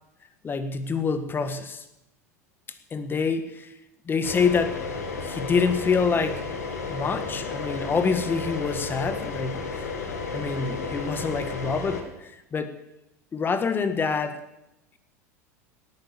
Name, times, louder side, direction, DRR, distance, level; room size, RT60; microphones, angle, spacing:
voice 1, 0.4-1.8 2.9-3.7 4.0-4.9 5.2-6.5 6.9-9.7 10.3-12.8 13.3-14.4, left 5 dB, 25° left, 11 dB, 1.7 m, -26 dB
sound 1, 4.2-12.0, left 4 dB, 75° left, 2.2 m, -33 dB
18.5 x 9.1 x 7.4 m, 0.93 s
figure-of-eight pair, 80°, 9 cm